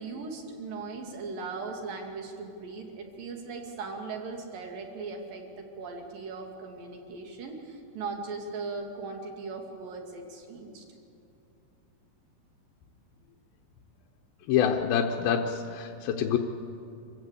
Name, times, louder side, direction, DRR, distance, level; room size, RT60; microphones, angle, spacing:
voice 1, 0.0-10.8, right 4 dB, 75° right, 2 dB, 4.0 m, -38 dB
voice 2, 14.5-16.4, left 8 dB, 90° left, 2 dB, 2.8 m, -26 dB
26.5 x 15.5 x 8.3 m, 2.6 s
omnidirectional pair, 4.1 m